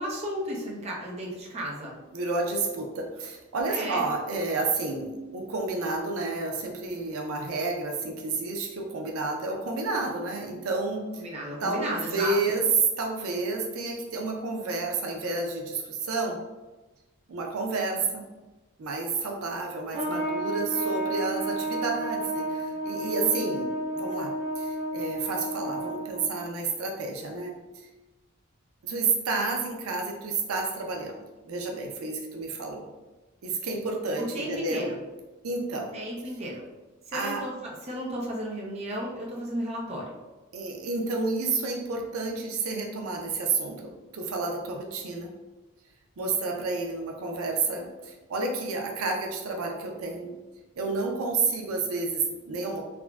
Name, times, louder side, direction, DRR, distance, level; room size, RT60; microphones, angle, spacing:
voice 1, 0.0-2.0 3.7-4.1 11.2-12.6 34.3-35.0 35.9-36.6 37.1-40.2, equal, 30° right, -3 dB, 0.5 m, -34 dB
voice 2, 2.1-11.2 11.6-12.6 13.0-16.4 17.3-18.2 18.8-27.9 28.8-31.2 31.4-32.9 33.4-34.9 35.4-35.9 37.1-37.4 40.5-45.3 46.2-50.3 50.8-52.8, right 3 dB, 85° right, 1 dB, 0.5 m, -30 dB
Trumpet, 19.9-26.4, right 1 dB, 65° right, 1.4 m, -31 dB
3.6 x 2.1 x 2.3 m, 1.1 s
head